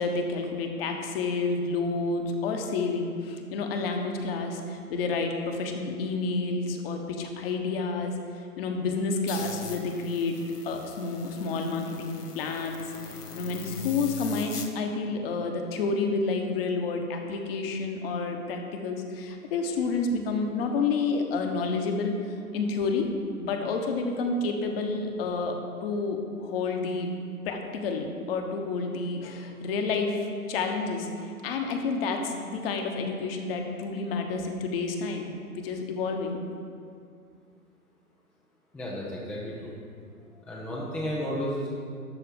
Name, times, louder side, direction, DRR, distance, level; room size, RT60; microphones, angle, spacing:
voice 1, 0.0-10.4 10.6-12.8 13.3-23.1 23.4-25.6 25.8-27.1 27.4-36.4, left 4 dB, 40° left, 3 dB, 1.3 m, -29 dB
sound 1, 9.3-14.7, left 6 dB, 85° left, 1.2 m, -42 dB
voice 2, 38.7-39.7 40.2-41.7, equal, 5° left, -5 dB, 0.6 m, -33 dB
12.5 x 4.4 x 8.1 m, 2.3 s
figure-of-eight pair, 125°, 45 cm